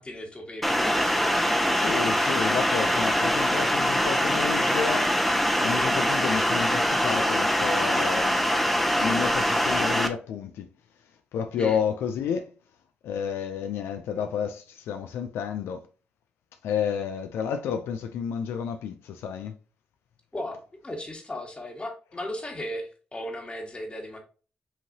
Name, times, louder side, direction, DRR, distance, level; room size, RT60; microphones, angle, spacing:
voice 1, 0.0-1.8 11.6-11.8 20.3-24.2, left 1 dB, 25° left, 1.5 m, -36 dB
sound 1, 0.6-10.1, equal, 5° left, 0.8 m, -23 dB
voice 2, 1.8-5.1 5.6-8.4 9.0-10.7 11.3-12.5 13.0-15.9 16.6-19.5, left 7 dB, 85° left, 0.4 m, -30 dB
5.7 x 2.9 x 2.7 m
supercardioid pair, 60°, 4 cm